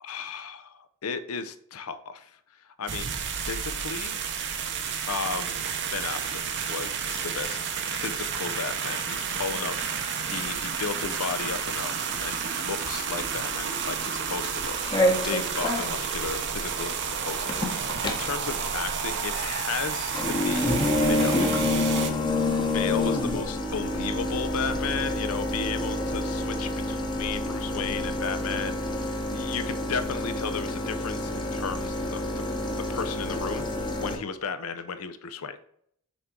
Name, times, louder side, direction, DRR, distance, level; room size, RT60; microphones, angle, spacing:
voice 1, 0.0-4.2 5.1-5.6 5.9-6.4 6.7-20.8 21.1-21.4 22.6-32.3 32.9-35.7, left 5 dB, 70° left, 11 dB, 0.6 m, -34 dB
sound 1, 2.9-22.1, right 6 dB, 55° right, 0.8 m, -31 dB
sound 2, 14.6-34.2, left 1 dB, 20° left, 0.9 m, -28 dB
6.2 x 3.7 x 4.5 m, 0.69 s
head